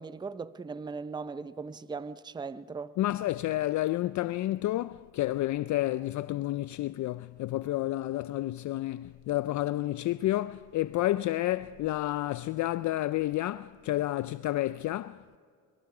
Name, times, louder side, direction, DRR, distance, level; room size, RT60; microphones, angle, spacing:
voice 1, 0.0-2.9, right 4 dB, 15° right, 0.6 m, -38 dB
voice 2, 3.0-15.4, left 15 dB, 55° left, 0.4 m, -30 dB
25.5 x 22.5 x 4.9 m
cardioid pair, 95°, 35 cm